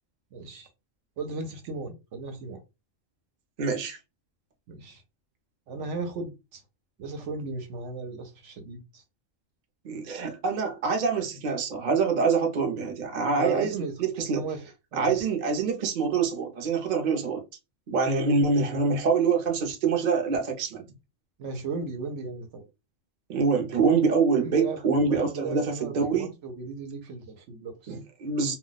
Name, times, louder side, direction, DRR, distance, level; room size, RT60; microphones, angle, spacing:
voice 1, 0.3-0.7 1.2-2.6 4.7-5.0 5.7-6.6 7.0-9.0 13.4-13.9 14.3-14.7 14.9-15.2 21.4-22.7 24.4-24.8 25.0-28.0, right 3 dB, 70° right, 1.0 m, -36 dB
voice 2, 3.6-4.0 9.8-14.4 14.9-17.4 17.9-20.9 23.3-26.3 27.9-28.5, right 5 dB, 45° right, 0.6 m, -25 dB
2.3 x 2.1 x 3.8 m
omnidirectional pair, 1.3 m